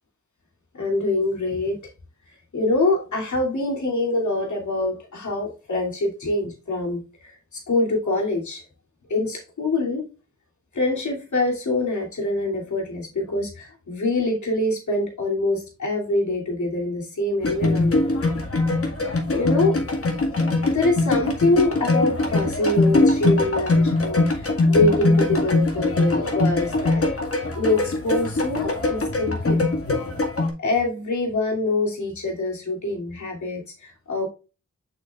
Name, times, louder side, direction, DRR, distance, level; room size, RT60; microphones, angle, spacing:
voice 1, 0.7-1.8 2.5-8.6 9.1-10.0 10.7-18.1 19.3-19.8 20.6-27.2 27.5-30.0 30.6-34.3, left 2 dB, 75° left, 2.8 m, -25 dB
sound 1, 17.4-30.5, left 2 dB, 50° left, 1.9 m, -22 dB
7.8 x 6.4 x 2.4 m
cardioid pair, 55°, 30 cm